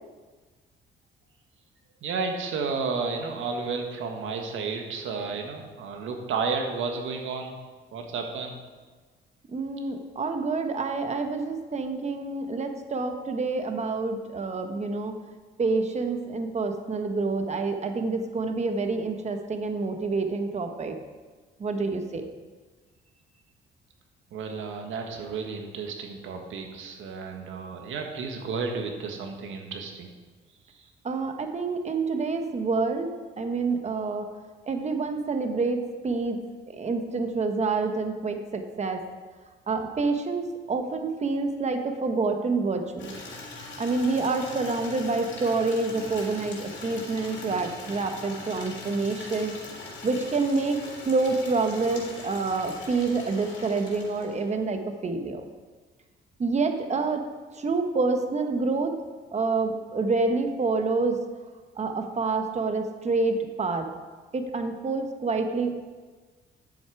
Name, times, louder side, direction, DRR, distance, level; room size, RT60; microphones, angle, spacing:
voice 1, 2.0-7.5 7.9-8.6 24.3-30.1, right 4 dB, 80° right, 3 dB, 1.7 m, -32 dB
voice 2, 9.5-15.2 15.6-20.9 21.6-22.3 31.0-33.1 33.4-34.3 34.7-36.4 36.7-39.0 39.7-43.2 43.8-49.5 50.0-55.4 56.4-57.2 57.6-58.9 59.3-61.2 61.8-63.9 64.3-65.7, right 3 dB, 35° right, 6 dB, 1.2 m, -27 dB
Water tap faucet / Liquid, 43.0-54.6, left 3 dB, 65° left, 3.3 m, -41 dB
10.5 x 7.8 x 4.8 m, 1.4 s
cardioid pair, 90°, 20 cm